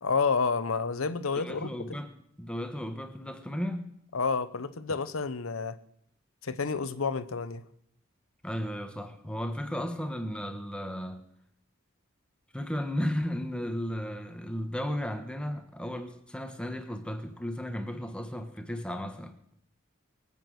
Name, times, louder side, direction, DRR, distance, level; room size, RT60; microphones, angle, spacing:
voice 1, 0.0-2.0 4.1-5.8 6.4-7.6, left 4 dB, 85° left, 0.9 m, -30 dB
voice 2, 1.3-2.1 2.4-3.9 8.4-11.2 12.5-19.5, equal, 5° left, 1.3 m, -34 dB
22.5 x 8.7 x 6.4 m
head